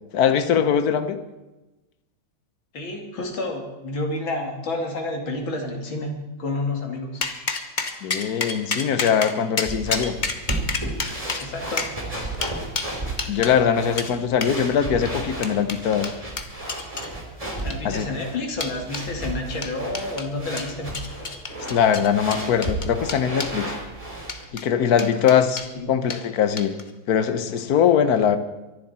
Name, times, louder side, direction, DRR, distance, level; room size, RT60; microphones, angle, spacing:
voice 1, 0.1-1.2 8.0-10.1 13.0-16.1 17.8-18.1 21.7-23.7 24.5-26.8 27.1-28.4, left 8 dB, 55° left, 10 dB, 1.4 m, -21 dB
voice 2, 2.7-7.2 11.4-11.9 17.6-21.0 25.7-25.9, left 2 dB, 80° left, 2 dB, 3.2 m, -30 dB
sound 1, 7.2-13.6 14.0-14.1 14.4-14.6 15.1-17.1 17.6-18.0 18.6-19.1 19.6-20.3 20.6-23.6 24.2-24.7 25.0-25.7 26.1-26.2 26.6-26.9, left 4 dB, 35° left, 0.8 m, -30 dB
sound 2, 9.6-24.4, right 2 dB, 15° right, 3.2 m, -33 dB
24.0 x 11.5 x 4.3 m, 1.1 s
omnidirectional pair, 2.2 m